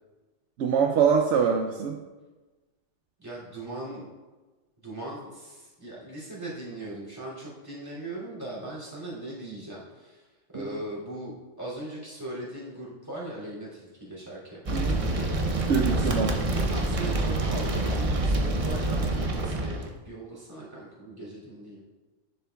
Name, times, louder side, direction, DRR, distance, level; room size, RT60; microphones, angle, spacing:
voice 1, 0.6-2.0 14.7-15.0 15.7-16.3, right 6 dB, 70° right, 3 dB, 0.8 m, -24 dB
voice 2, 3.2-4.1 4.8-14.8 15.9-19.8 20.0-21.8, right 1 dB, 15° right, -6 dB, 2.6 m, -39 dB
sound 1, 14.7-19.9, right 2 dB, 35° right, 0.6 m, -27 dB
10.5 x 6.7 x 2.3 m, 1.3 s
omnidirectional pair, 1.3 m